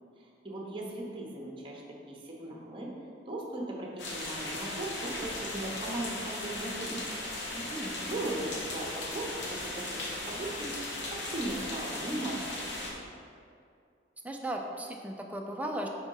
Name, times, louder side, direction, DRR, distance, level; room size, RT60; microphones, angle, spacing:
voice 1, 0.2-1.8 2.1-2.9 3.3-7.1 8.0-10.0 10.3-13.0, right 1 dB, 30° right, -1 dB, 0.9 m, -38 dB
sound 1, 4.0-12.9, left 2 dB, 75° left, 1.1 m, -37 dB
voice 2, 7.5-7.9 14.2-15.9, right 1 dB, 10° right, 1 dB, 0.5 m, -36 dB
4.5 x 4.3 x 5.4 m, 2.4 s
head